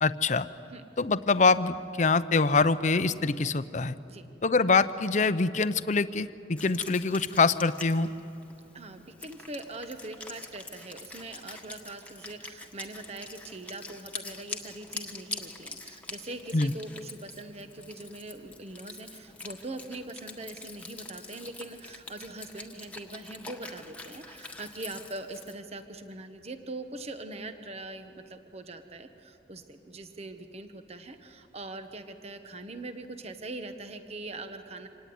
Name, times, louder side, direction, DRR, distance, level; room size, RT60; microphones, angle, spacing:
voice 1, 0.0-0.5 1.0-3.9 4.4-8.1 16.5-16.7, left 4 dB, 45° left, 13 dB, 0.7 m, -24 dB
Wind instrument woodwind instrument, 6.6-25.5, left 3 dB, 10° left, 1.5 m, -44 dB
voice 2, 8.7-34.9, right 2 dB, 35° right, 8 dB, 1.1 m, -42 dB
26.0 x 18.5 x 9.4 m, 2.8 s
head